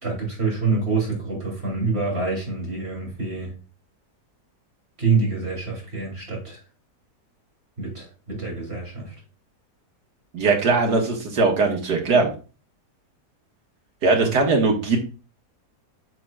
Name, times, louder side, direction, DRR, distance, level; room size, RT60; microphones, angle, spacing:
voice 1, 0.0-3.5 5.0-6.6 7.8-9.1 14.2-14.3, right 4 dB, 40° right, -2 dB, 3.2 m, -26 dB
voice 2, 10.3-12.3 14.0-15.0, right 3 dB, 80° right, 2 dB, 2.0 m, -20 dB
7.8 x 6.2 x 2.4 m, 0.34 s
omnidirectional pair, 1.7 m